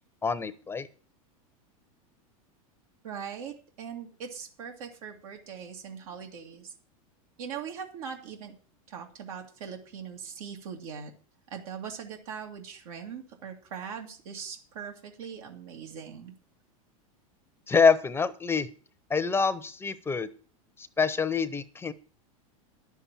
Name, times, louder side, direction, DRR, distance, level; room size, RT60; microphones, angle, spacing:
voice 1, 0.2-0.9 17.7-18.7 19.1-20.3 20.8-21.9, left 5 dB, 15° left, 12 dB, 0.8 m, -26 dB
voice 2, 3.0-6.7 7.4-8.6 8.9-11.1 11.5-16.3, right 7 dB, 75° right, 3 dB, 2.4 m, -41 dB
10.5 x 7.2 x 7.5 m, 0.40 s
supercardioid pair, 125°, 18 cm